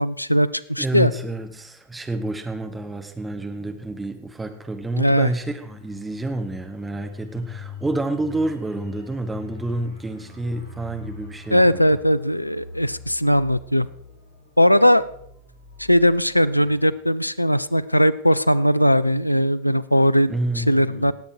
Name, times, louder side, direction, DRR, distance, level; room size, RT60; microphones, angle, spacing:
voice 1, 0.0-1.1 5.0-5.3 11.5-13.9 14.6-15.0 15.8-21.1, equal, 90° left, 18 dB, 0.4 m, -19 dB
voice 2, 0.8-11.8 20.3-21.1, right 2 dB, 10° right, 6 dB, 1.5 m, -29 dB
sound 1, 5.6-18.0 18.3-18.5, left 4 dB, 60° left, 5.9 m, -43 dB
18.5 x 8.1 x 4.9 m, 0.70 s
figure-of-eight pair, 90°, 0 cm